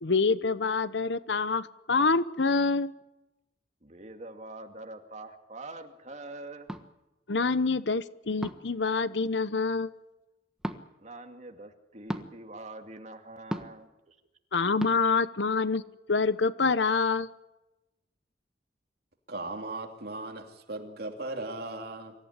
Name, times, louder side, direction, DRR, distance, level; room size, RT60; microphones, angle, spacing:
voice 1, 0.0-2.9 7.3-9.9 14.5-15.8 16.1-17.3, left 4 dB, 75° left, 15 dB, 0.9 m, -26 dB
voice 2, 3.8-6.7 11.0-14.2, right 2 dB, 40° right, 4 dB, 2.4 m, -44 dB
sound 1, 6.7-6.9 8.4-8.7 10.6-10.8 12.1-12.3 13.5-13.8 14.8-14.9, equal, 5° right, 1.4 m, -34 dB
voice 3, 19.3-22.1, right 2 dB, 60° right, 3 dB, 2.9 m, -37 dB
25.0 x 15.0 x 9.8 m, 0.99 s
head